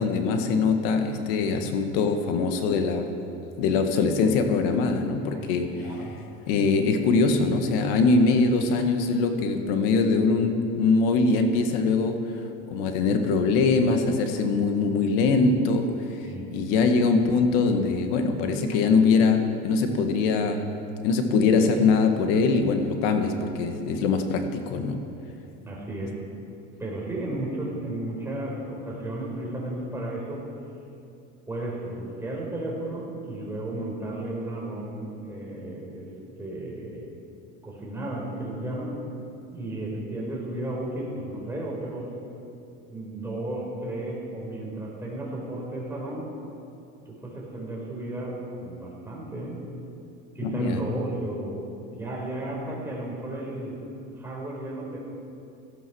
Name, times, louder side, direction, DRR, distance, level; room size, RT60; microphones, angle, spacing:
voice 1, 0.0-3.1 3.6-5.9 6.5-16.3 16.5-20.6 21.0-25.0 50.4-50.8, left 4 dB, 90° left, 6 dB, 1.8 m, -23 dB
voice 2, 5.7-6.2 16.2-16.5 25.6-26.2 26.8-30.5 31.5-36.1 36.4-37.0 37.6-38.9 39.5-42.1 42.9-46.3 47.0-49.6 50.3-51.7 51.9-53.8 54.1-55.0, right 1 dB, 10° right, -4 dB, 5.0 m, -33 dB
16.5 x 13.0 x 6.3 m, 2.6 s
cardioid pair, 135°, 29 cm